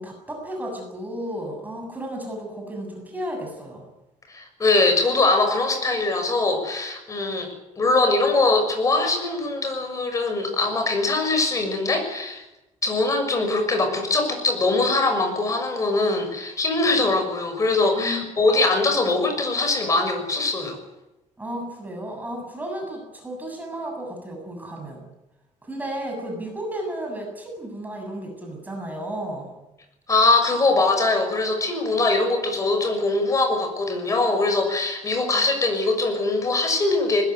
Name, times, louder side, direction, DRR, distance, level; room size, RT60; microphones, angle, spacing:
voice 1, 0.0-3.8 18.0-18.2 21.4-25.0 25.6-29.5, right 1 dB, 15° right, 2 dB, 7.3 m, -33 dB
voice 2, 4.3-7.5 7.8-12.4 12.8-20.8 30.1-37.2, left 3 dB, 25° left, 5 dB, 6.4 m, -22 dB
21.0 x 20.5 x 9.5 m, 0.96 s
cardioid pair, 165°, 13 cm